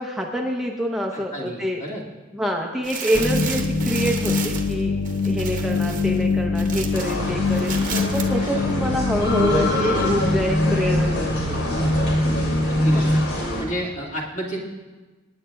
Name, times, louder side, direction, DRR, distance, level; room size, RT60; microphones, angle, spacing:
voice 1, 0.0-1.8 2.3-5.0 5.2-7.8 8.1-11.6, equal, ahead, -1 dB, 0.7 m, -26 dB
voice 2, 1.1-2.0 8.4-8.6 12.7-13.1 13.6-14.6, equal, 40° left, -3 dB, 1.9 m, -31 dB
sound 1, 2.8-7.2 7.5-8.3 8.6-8.7, right 6 dB, 40° right, 1.0 m, -33 dB
sound 2, 3.1-13.2, left 2 dB, 55° left, 0.9 m, -23 dB
sound 3, 6.9-13.6, left 1 dB, 80° left, 2.5 m, -26 dB
25.5 x 9.7 x 2.3 m, 1.3 s
head